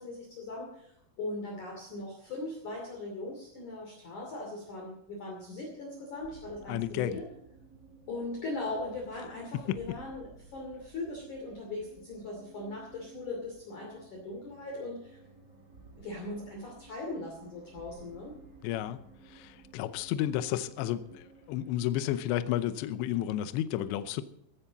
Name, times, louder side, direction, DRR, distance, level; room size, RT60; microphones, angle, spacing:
voice 1, 0.0-7.2 8.1-15.2 16.0-18.4, left 2 dB, 45° left, 0 dB, 3.4 m, -39 dB
sound 1, 6.2-22.1, right 4 dB, 70° right, 0.8 m, -56 dB
voice 2, 6.7-7.2 9.5-10.0 18.6-19.0 19.3-24.2, left 12 dB, 80° left, 12 dB, 2.7 m, -32 dB
15.5 x 15.0 x 4.0 m, 0.73 s
omnidirectional pair, 6.0 m